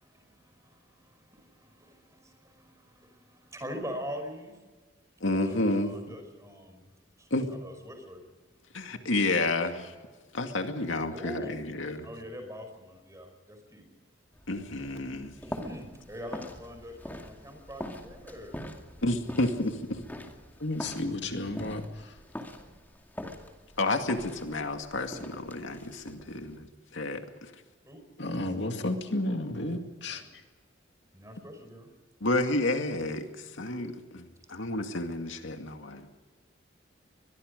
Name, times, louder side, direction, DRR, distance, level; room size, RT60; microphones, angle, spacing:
voice 1, 0.0-4.6 5.2-6.8 7.2-8.2 11.1-11.5 12.0-13.9 15.4-18.6 27.9-28.0 30.1-30.3 31.1-31.9, equal, 15° right, 6 dB, 5.1 m, -43 dB
voice 2, 5.2-6.2 7.3-7.5 8.7-9.9 10.3-12.1 14.5-15.3 19.0-20.0 23.8-26.7 26.9-27.6 32.2-36.1, left 2 dB, 90° left, 5 dB, 2.3 m, -30 dB
sound 1, 14.3-26.6, left 1 dB, 10° left, 2.3 m, -44 dB
voice 3, 20.6-22.1 28.2-30.2, left 1 dB, 65° left, 5 dB, 2.3 m, -32 dB
24.0 x 22.0 x 5.3 m, 1.3 s
head